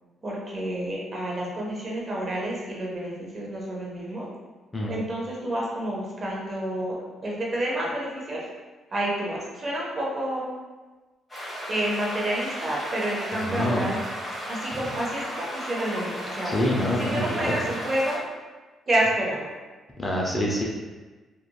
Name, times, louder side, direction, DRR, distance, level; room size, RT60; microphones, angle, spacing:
voice 1, 0.2-4.3 4.9-8.4 8.9-10.5 11.7-14.0 14.5-16.6 17.0-18.2 18.9-19.5, right 1 dB, 40° right, -3 dB, 0.7 m, -29 dB
sound 1, 11.3-18.2, equal, 5° left, 1.2 m, -35 dB
voice 2, 13.4-13.9 16.4-17.5 20.0-20.6, left 1 dB, 20° left, -2 dB, 0.5 m, -26 dB
2.8 x 2.5 x 2.3 m, 1.3 s
cardioid pair, 90°, 0 cm